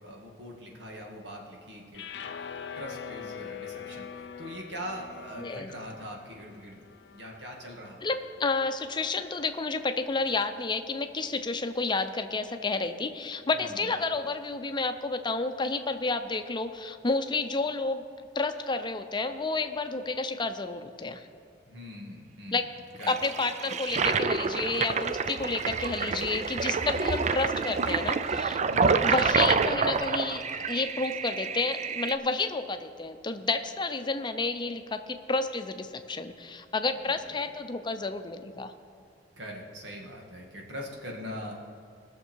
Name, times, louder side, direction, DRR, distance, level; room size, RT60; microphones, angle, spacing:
voice 1, 0.0-2.0 2.8-6.8 7.1-8.0 13.6-13.9 21.7-22.7 23.0-23.3 26.0-26.5 27.0-27.1 28.7-29.2 37.1-37.2 39.4-41.5, equal, 85° right, -1 dB, 2.1 m, -42 dB
sound 1, 1.9-8.2, left 7 dB, 70° left, 0.5 m, -43 dB
voice 2, 5.4-5.7 8.0-18.0 18.3-21.3 22.5-22.7 23.1-28.6 29.0-30.4 30.7-38.7, left 3 dB, 25° left, 8 dB, 0.6 m, -30 dB
Toilet flush, 23.0-32.1, right 5 dB, 40° right, 0.4 m, -28 dB
sound 2, 29.6-31.4, right 1 dB, 60° right, 1.5 m, -49 dB
19.5 x 6.8 x 4.6 m, 2.4 s
head